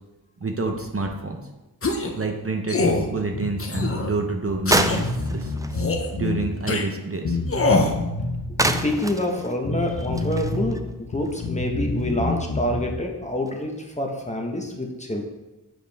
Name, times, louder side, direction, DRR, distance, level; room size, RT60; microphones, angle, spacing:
voice 1, 0.4-1.4 2.1-5.5 6.1-7.4, right 3 dB, 35° right, 3 dB, 0.8 m, -28 dB
sound 1, 1.8-2.2 2.7-3.1 3.6-4.1 4.7-5.0 5.7-6.1 6.7-6.8 7.5-8.0, left 3 dB, 35° left, 0.8 m, -23 dB
Bass guitar, 3.3-4.0 4.5-4.6 4.8-6.5 7.2-8.9 9.6-10.8 11.0-12.9, left 2 dB, 90° left, 1.3 m, -28 dB
sound 2, 4.7-6.4 8.0-8.1 8.6-11.6 12.0-12.1 12.6-12.7 13.5-13.7, right 1 dB, 10° right, 0.4 m, -28 dB
voice 2, 8.6-15.2, left 1 dB, 20° left, 1 dB, 1.1 m, -27 dB
7.6 x 4.9 x 3.5 m, 1.0 s
cardioid pair, 55°, 39 cm